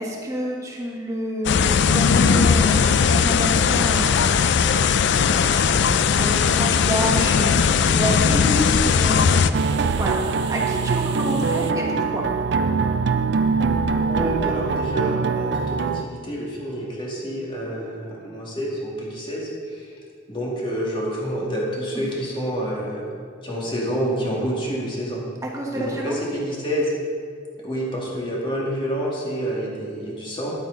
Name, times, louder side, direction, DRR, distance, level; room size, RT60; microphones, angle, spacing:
voice 1, 0.0-4.8 5.3-10.2 10.5-12.3 21.9-22.1 25.4-26.2, equal, 15° right, -2 dB, 1.4 m, -29 dB
sound 1, 1.5-9.5, left 6 dB, 65° left, 0.4 m, -18 dB
sound 2, 9.5-16.0, right 5 dB, 65° right, 0.4 m, -23 dB
voice 2, 14.1-20.0 20.3-23.1 23.4-25.2 25.7-26.9 27.6-30.5, equal, 25° left, -4 dB, 2.1 m, -28 dB
10.5 x 8.7 x 3.9 m, 2.2 s
head